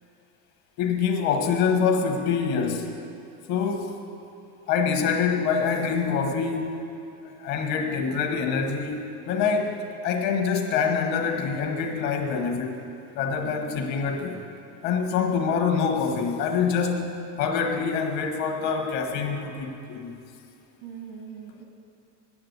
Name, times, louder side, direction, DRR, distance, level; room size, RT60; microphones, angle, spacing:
voice 1, 0.8-3.0 3.5-4.0 4.7-6.8 7.2-12.8 13.1-14.4 14.8-20.1, left 6 dB, 45° left, 4 dB, 1.2 m, -25 dB
voice 2, 13.4-13.8 20.8-21.6, right 7 dB, 90° right, 2 dB, 1.6 m, -41 dB
8.7 x 8.7 x 8.0 m, 2.6 s
cardioid pair, 170°, 37 cm